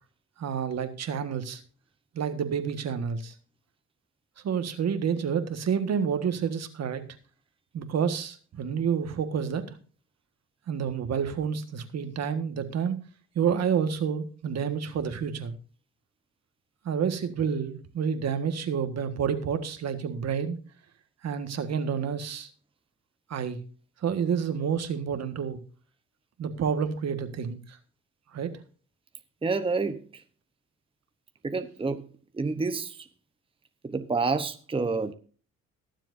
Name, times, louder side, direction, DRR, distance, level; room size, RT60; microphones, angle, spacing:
voice 1, 0.4-1.6 2.1-3.3 4.4-7.0 7.7-9.8 10.7-13.0 13.3-15.5 16.8-20.6 21.2-22.5 23.3-23.6 24.0-25.6 26.4-27.8 28.3-28.5, right 7 dB, 60° right, 1.6 m, -29 dB
voice 2, 29.4-30.0 31.4-32.0 32.3-33.1 33.8-35.1, right 4 dB, 20° right, 0.9 m, -28 dB
22.0 x 7.5 x 2.6 m
cardioid pair, 90°, 30 cm